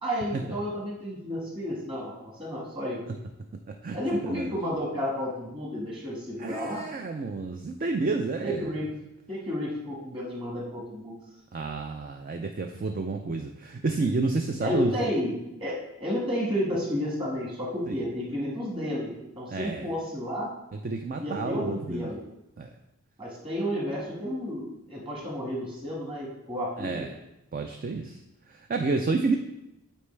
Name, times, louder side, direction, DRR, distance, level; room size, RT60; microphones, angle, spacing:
voice 1, 0.0-3.0 3.9-6.9 8.4-8.9 9.3-11.2 14.6-20.5 21.2-22.2 23.2-27.0, equal, 25° right, -4 dB, 1.7 m, -31 dB
voice 2, 6.4-8.8 11.5-14.9 17.9-18.1 19.5-19.9 20.7-22.1 22.6-22.7 26.8-27.1 27.5-28.2 28.5-29.4, right 3 dB, 40° right, 5 dB, 0.3 m, -30 dB
8.3 x 4.5 x 3.3 m, 0.91 s
head